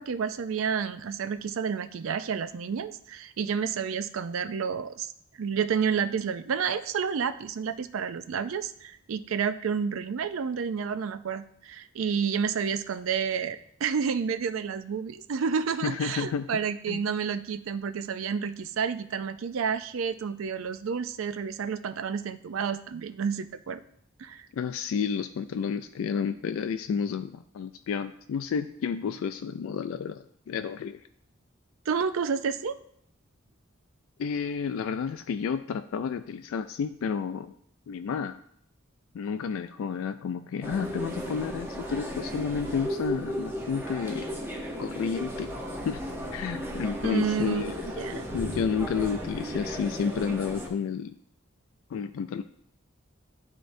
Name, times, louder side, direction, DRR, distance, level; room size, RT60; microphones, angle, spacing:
voice 1, 0.0-5.1 5.4-23.8 24.2-24.5 31.9-32.8 47.0-47.6 47.9-48.3, right 6 dB, 70° right, 11 dB, 0.4 m, -30 dB
voice 2, 15.8-16.5 16.9-17.0 24.5-30.2 30.5-31.0 34.2-37.5 37.9-38.4 39.1-44.3 44.8-45.5 45.8-46.0 46.3-47.8 48.1-51.1 51.9-52.4, left 6 dB, 80° left, 9 dB, 0.3 m, -31 dB
sound 1, 40.6-50.7, equal, 10° right, 0.8 m, -35 dB
11.0 x 3.7 x 2.6 m, 0.65 s
head